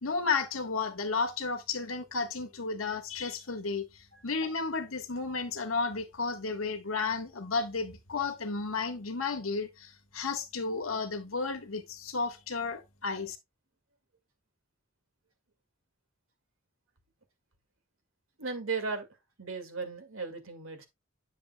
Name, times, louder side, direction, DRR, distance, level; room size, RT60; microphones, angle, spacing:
voice 1, 0.0-13.4, left 4 dB, 90° left, 1.3 m, -33 dB
voice 2, 18.4-19.1 19.4-20.8, right 4 dB, 90° right, 2.0 m, -36 dB
9.5 x 6.7 x 2.2 m
head